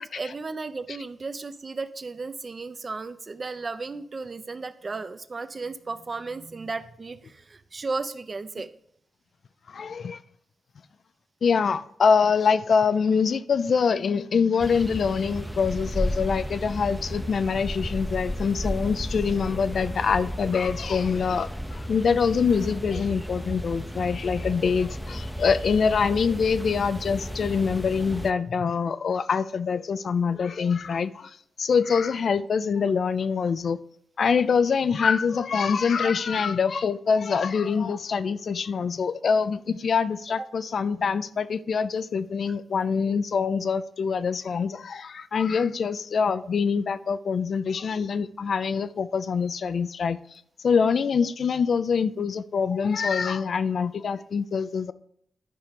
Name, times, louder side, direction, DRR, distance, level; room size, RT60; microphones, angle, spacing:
voice 1, 0.0-8.7 25.1-25.2 36.1-36.2 38.8-38.9 40.4-40.5, right 3 dB, 40° right, 0.7 m, -35 dB
voice 2, 9.7-10.2 11.4-33.8 34.2-50.2 50.6-54.9, left 6 dB, 65° left, 0.4 m, -24 dB
sound 1, 14.6-28.3, equal, ahead, 0.6 m, -33 dB
11.0 x 4.7 x 5.3 m
cardioid pair, 70°, 0 cm